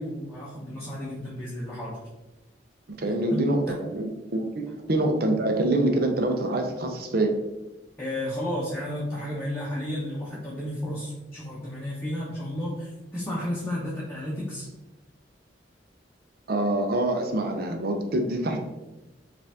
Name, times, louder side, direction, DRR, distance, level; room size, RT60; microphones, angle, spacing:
voice 1, 0.0-2.0 3.3-3.8 8.0-14.7, left 1 dB, 15° left, -7 dB, 0.9 m, -32 dB
voice 2, 3.0-7.3 16.5-18.6, right 1 dB, 60° right, 4 dB, 0.7 m, -25 dB
5.0 x 2.6 x 3.4 m, 1.0 s
head